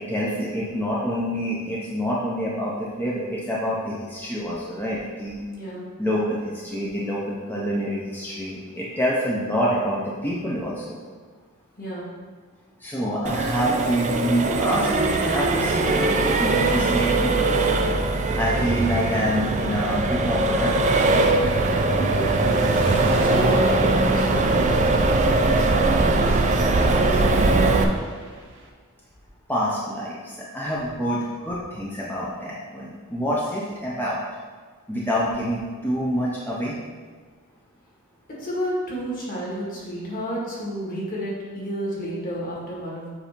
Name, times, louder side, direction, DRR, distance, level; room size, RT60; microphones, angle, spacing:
voice 1, 0.0-5.4 6.0-11.0 12.8-17.4 18.3-20.7 29.5-34.2 34.9-36.7, equal, 10° left, -6 dB, 0.6 m, -26 dB
voice 2, 5.5-5.9 11.8-12.1 21.9-22.6 23.0-28.0 38.3-43.1, equal, 40° left, -6 dB, 1.9 m, -32 dB
Accelerating revving vroom, 13.3-27.8, right 2 dB, 35° right, 0.4 m, -21 dB
sound 1, 20.2-28.7, right 1 dB, 55° right, 0.9 m, -33 dB
7.4 x 2.7 x 5.1 m, 1.5 s
head